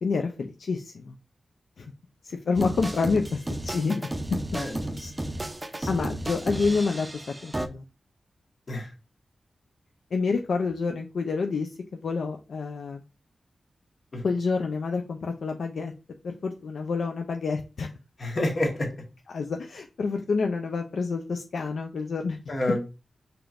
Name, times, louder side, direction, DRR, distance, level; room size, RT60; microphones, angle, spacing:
voice 1, 0.0-1.2 1.8-1.9 2.2-4.1 5.9-7.8 10.1-13.0 14.2-15.9 16.2-17.9 19.3-22.4, left 4 dB, 85° left, 4 dB, 0.4 m, -28 dB
sound 1, 2.5-7.7, right 1 dB, 20° right, 0.4 m, -33 dB
voice 2, 4.5-5.1 5.8-5.9 8.7-8.9 14.1-14.2 18.2-18.9 22.5-22.8, left 1 dB, 55° left, 2 dB, 1.2 m, -29 dB
5.0 x 3.0 x 2.4 m, 0.30 s
wide cardioid pair, 90°, 0 cm